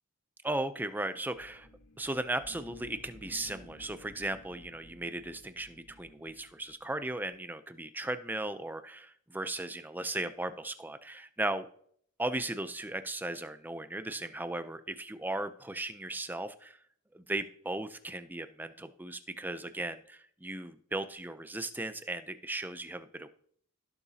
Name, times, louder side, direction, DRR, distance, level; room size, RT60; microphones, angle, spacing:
voice 1, 0.4-1.7 2.0-11.7 12.2-16.8 17.1-23.3, right 2 dB, 10° right, 11 dB, 0.4 m, -36 dB
sound 1, 1.3-7.3, left 1 dB, 60° left, 2.2 m, -55 dB
16.5 x 6.9 x 2.8 m, 0.62 s
head